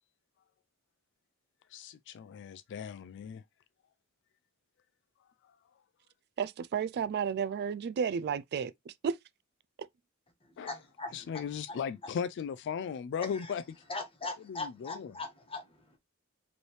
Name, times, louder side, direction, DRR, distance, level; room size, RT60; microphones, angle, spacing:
voice 1, 1.7-3.4 10.6-10.8 11.1-13.8 14.4-15.1, left 7 dB, 55° left, 0.3 m, -37 dB
voice 2, 6.4-9.2 9.8-9.9, right 7 dB, 45° right, 0.3 m, -32 dB
voice 3, 10.6-11.4 13.3-13.5 13.9-16.0, left 3 dB, 25° left, 1.3 m, -40 dB
5.2 x 3.3 x 3.0 m
head